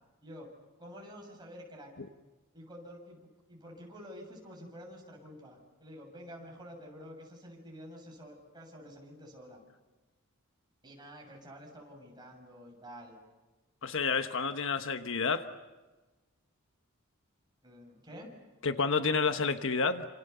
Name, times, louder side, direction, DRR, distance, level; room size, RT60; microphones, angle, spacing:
voice 1, 0.2-0.5 0.8-1.9 2.5-3.2 3.5-9.6 10.8-13.2 17.6-18.3, equal, 20° right, 0 dB, 7.3 m, -49 dB
voice 2, 13.8-15.5 18.6-20.0, left 4 dB, 65° left, 9 dB, 1.2 m, -29 dB
29.0 x 27.5 x 6.9 m, 1.2 s
head